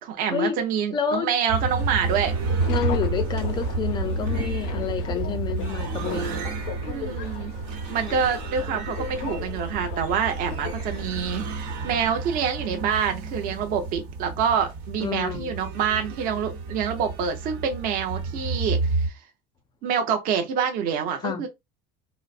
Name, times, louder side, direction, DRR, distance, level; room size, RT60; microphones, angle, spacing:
voice 1, 0.0-2.4 6.8-7.5 7.9-19.1 19.8-21.5, right 7 dB, 45° right, 0.7 m, -26 dB
voice 2, 0.9-1.3 2.7-6.5 15.0-15.5 21.2-21.4, left 7 dB, 20° left, 0.4 m, -29 dB
sound 1, 1.5-19.1, right 4 dB, 90° right, 1.2 m, -30 dB
Subway metro underground, 2.1-12.1, left 5 dB, 70° left, 0.5 m, -36 dB
3.9 x 2.0 x 2.4 m
cardioid pair, 165°, 20 cm